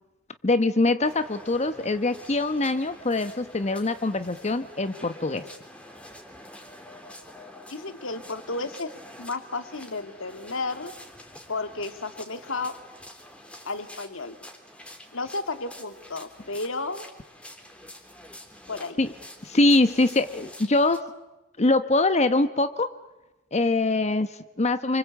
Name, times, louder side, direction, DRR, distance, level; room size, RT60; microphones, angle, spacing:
voice 1, 0.4-5.5 19.0-19.1 19.4-21.0 21.6-22.9 23.5-25.0, left 2 dB, 30° left, 10 dB, 1.0 m, -23 dB
sound 1, 1.0-21.0, left 1 dB, 5° left, 3.4 m, -47 dB
voice 2, 7.7-8.9 9.2-10.9 11.5-12.7 13.6-14.4 15.1-17.1 18.7-19.0, left 3 dB, 65° left, 8 dB, 2.3 m, -32 dB
28.5 x 25.5 x 8.3 m, 1.0 s
head